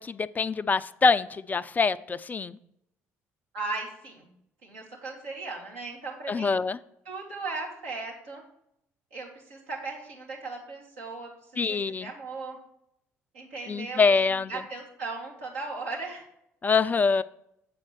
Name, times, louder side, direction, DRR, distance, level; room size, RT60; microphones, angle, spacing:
voice 1, 0.0-2.6 6.3-6.8 11.6-12.1 13.7-14.5 16.6-17.2, left 4 dB, 20° left, 16 dB, 0.3 m, -25 dB
voice 2, 3.5-4.3 4.6-6.5 7.1-8.4 9.1-12.6 13.3-14.2 14.5-16.2, right 3 dB, 75° right, -3 dB, 2.0 m, -37 dB
7.6 x 4.2 x 6.1 m, 0.77 s
figure-of-eight pair, 50°, 7 cm